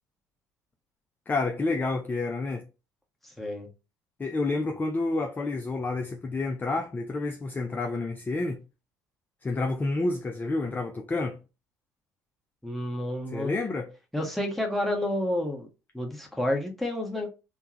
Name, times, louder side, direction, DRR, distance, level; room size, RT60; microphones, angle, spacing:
voice 1, 1.3-2.6 4.2-8.6 9.4-11.4 13.3-13.9, left 3 dB, 20° left, 0.4 m, -29 dB
voice 2, 3.2-3.7 12.6-13.5 14.1-15.7 15.9-17.3, left 1 dB, ahead, 1.2 m, -30 dB
3.5 x 2.2 x 2.9 m
hypercardioid pair, 55°, 9 cm